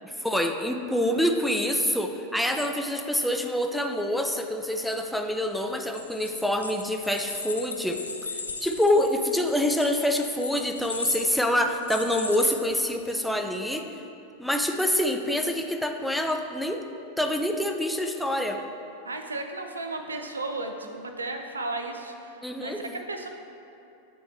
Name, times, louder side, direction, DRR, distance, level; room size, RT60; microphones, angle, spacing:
voice 1, 0.2-8.0 8.6-13.9 14.4-16.8 17.2-18.6 22.4-22.8, left 1 dB, ahead, 4 dB, 0.4 m, -26 dB
sound 1, 5.8-13.2, left 3 dB, 75° left, 0.4 m, -37 dB
voice 2, 19.0-23.3, right 2 dB, 75° right, 5 dB, 0.4 m, -34 dB
8.8 x 3.3 x 3.2 m, 2.7 s
figure-of-eight pair, 90°, 0 cm